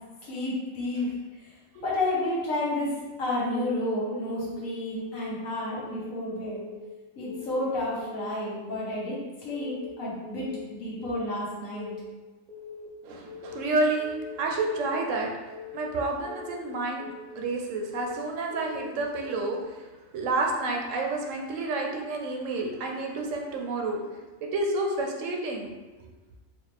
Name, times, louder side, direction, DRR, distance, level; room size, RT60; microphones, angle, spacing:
voice 1, 0.2-1.1 1.7-2.9 3.2-6.6 7.2-11.9, left 1 dB, 75° left, -6 dB, 1.5 m, -31 dB
Keyboard (musical) / Alarm, 3.5-3.8 4.2-4.6 5.0-5.3 5.7-6.1 6.5-6.9 7.2-7.6 8.0-8.4 8.7-9.1 9.5-9.9 10.2-10.6 11.0-11.4 11.7-12.1 12.5-12.9 13.2-13.6 14.0-14.4 14.7-15.1 15.5-15.9 16.2-16.6 17.0-17.4 17.7-18.1 18.5-18.9 19.2-19.6, left 5 dB, 90° right, 0.3 m, -42 dB
voice 2, 13.0-14.1 14.4-15.3 15.7-17.1 17.4-19.6 20.1-24.0 24.4-25.7, right 2 dB, 70° right, 1 dB, 0.9 m, -29 dB
4.2 x 2.2 x 3.3 m, 1.2 s
omnidirectional pair, 1.4 m